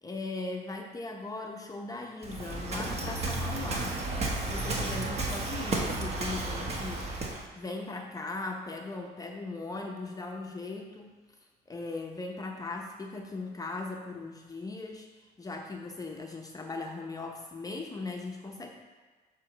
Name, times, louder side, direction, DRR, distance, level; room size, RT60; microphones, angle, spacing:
voice 1, 0.0-4.0 4.4-7.1 7.5-11.1 11.7-18.7, left 3 dB, 20° left, 2 dB, 0.7 m, -38 dB
Waves surf, 2.2-7.5, right 2 dB, 40° right, 1.2 m, -33 dB
8.0 x 3.1 x 5.9 m, 1.4 s
cardioid pair, 110°, 17 cm